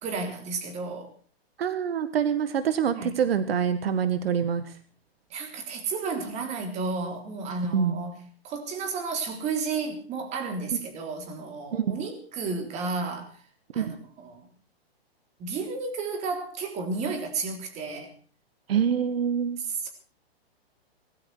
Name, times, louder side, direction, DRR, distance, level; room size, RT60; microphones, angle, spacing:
voice 1, 0.0-1.1 2.9-3.1 5.3-13.3 13.7-14.5 15.4-18.1 19.6-19.9, right 4 dB, 20° right, 5 dB, 3.6 m, -32 dB
voice 2, 1.6-4.6 7.7-8.0 11.7-12.0 13.8-13.9 18.7-19.6, right 7 dB, 70° right, 12 dB, 1.7 m, -25 dB
18.5 x 16.0 x 4.7 m, 0.40 s
hypercardioid pair, 150°, 31 cm